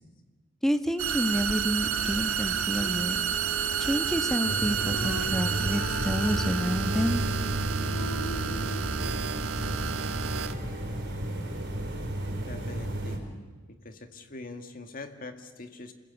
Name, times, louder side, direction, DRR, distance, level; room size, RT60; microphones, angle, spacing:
voice 1, 0.6-3.2 3.8-7.3, equal, ahead, 8 dB, 1.3 m, -29 dB
sound 1, 1.0-10.5, right 7 dB, 80° right, 1.3 m, -30 dB
Female singing, 2.8-9.3, left 2 dB, 60° left, 1.7 m, -41 dB
sound 2, 4.4-13.2, right 1 dB, 55° right, 5.0 m, -33 dB
voice 2, 12.5-13.2 13.7-15.9, left 2 dB, 40° left, 7 dB, 2.0 m, -43 dB
27.0 x 21.0 x 8.3 m, 1.3 s
head